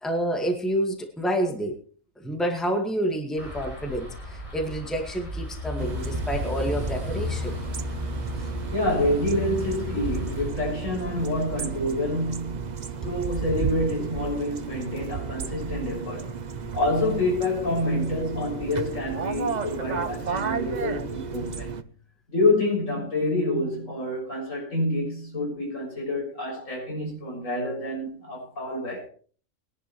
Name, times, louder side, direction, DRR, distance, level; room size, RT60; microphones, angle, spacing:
voice 1, 0.0-1.8 2.2-7.6, right 1 dB, ahead, 1.8 m, -28 dB
sound 1, 3.4-10.5, left 3 dB, 25° left, 5.2 m, -34 dB
sound 2, 5.8-21.8, right 6 dB, 40° right, 0.7 m, -33 dB
voice 2, 8.7-12.8 13.0-16.3 16.7-21.7 22.3-29.1, left 1 dB, 70° left, 7.2 m, -27 dB
21.5 x 11.0 x 3.2 m
omnidirectional pair, 1.4 m